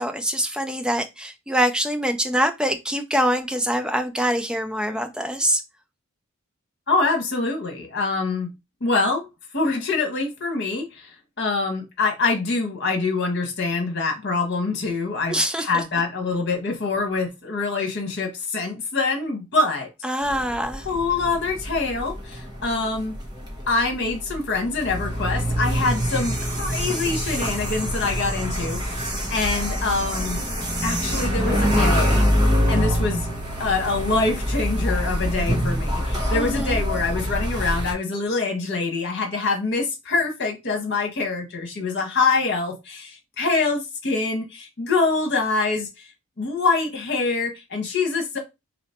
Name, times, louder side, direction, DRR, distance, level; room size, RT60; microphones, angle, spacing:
voice 1, 0.0-5.6 15.3-15.8 20.0-20.9 36.3-36.8, equal, 5° right, 0.4 m, -24 dB
voice 2, 6.9-8.5 8.8-9.2 9.5-11.1 11.4-19.9 20.8-23.1 23.7-30.4 30.8-32.3 32.7-33.3 33.6-45.9 46.4-48.4, left 3 dB, 50° left, 1.3 m, -25 dB
sound 1, 20.2-37.9, equal, 20° right, 1.0 m, -25 dB
3.0 x 2.9 x 4.3 m
head